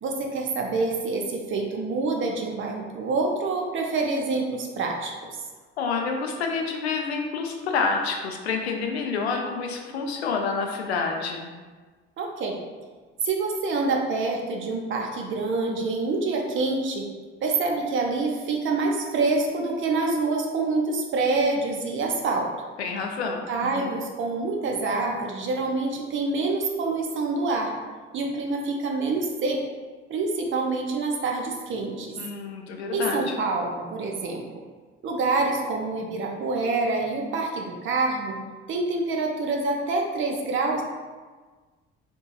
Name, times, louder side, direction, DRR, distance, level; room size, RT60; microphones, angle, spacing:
voice 1, 0.0-5.1 12.2-12.6 13.2-17.0 17.4-22.5 23.5-27.7 28.1-29.6 30.1-32.2 32.9-34.4 35.0-38.4 38.7-40.8, right 3 dB, 40° right, 0 dB, 0.6 m, -26 dB
voice 2, 5.8-11.5 22.8-23.9 32.1-33.3, left 4 dB, 75° left, 2 dB, 0.5 m, -28 dB
4.4 x 2.6 x 2.3 m, 1.4 s
figure-of-eight pair, 50°, 32 cm